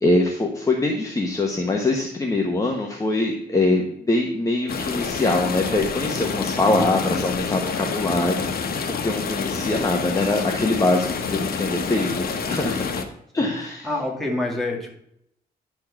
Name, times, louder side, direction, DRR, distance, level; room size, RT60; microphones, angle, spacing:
voice 1, 0.0-13.0 13.3-13.9, left 2 dB, 20° left, 1 dB, 1.1 m, -23 dB
sound 1, 4.7-13.0, left 5 dB, 65° left, 1.2 m, -28 dB
voice 2, 13.8-14.9, left 1 dB, ahead, -3 dB, 2.0 m, -26 dB
10.5 x 4.5 x 5.8 m, 0.74 s
wide cardioid pair, 150°, 17 cm